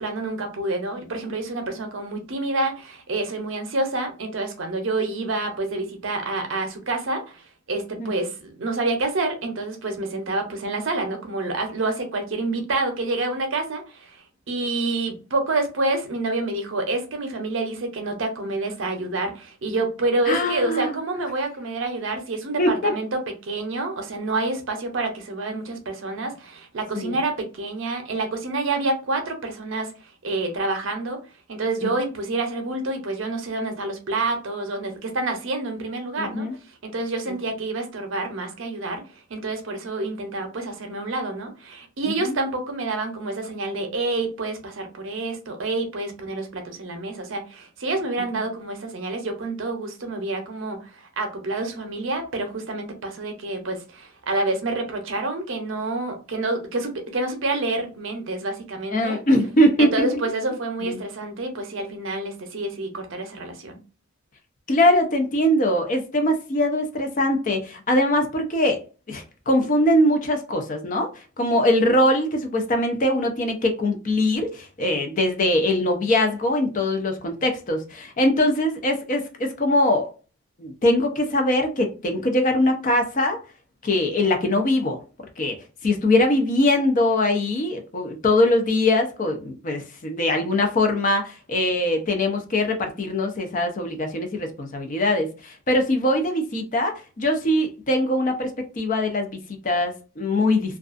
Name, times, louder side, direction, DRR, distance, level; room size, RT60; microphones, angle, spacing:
voice 1, 0.0-14.2 14.5-29.9 30.2-31.2 31.5-36.5 36.8-39.0 39.3-59.2 59.8-63.8, right 2 dB, 65° right, 0.6 m, -28 dB
voice 2, 20.3-21.0 22.6-22.9 26.9-27.2 31.8-31.9 36.2-36.5 37.3-37.4 42.0-42.4 58.9-60.1 60.8-61.0 64.7-68.8 69.1-71.1 71.4-80.1 80.6-83.4 83.8-85.0 85.4-85.6 85.8-100.8, left 1 dB, 40° left, 0.5 m, -22 dB
2.4 x 2.3 x 2.4 m
head